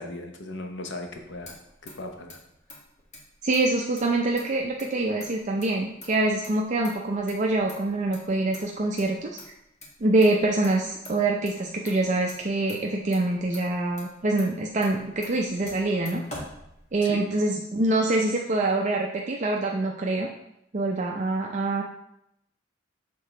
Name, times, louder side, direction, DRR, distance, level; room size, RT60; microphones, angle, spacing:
voice 1, 0.0-1.6 1.8-2.4 17.0-17.3, left 2 dB, 65° left, 4 dB, 0.9 m, -37 dB
Motor vehicle (road), 1.1-17.3, left 1 dB, 40° left, 1.6 m, -47 dB
voice 2, 3.4-9.3 10.0-16.2 16.9-20.3 20.7-21.8, right 2 dB, 40° right, 0 dB, 0.5 m, -25 dB
6.9 x 3.7 x 4.3 m, 0.80 s
head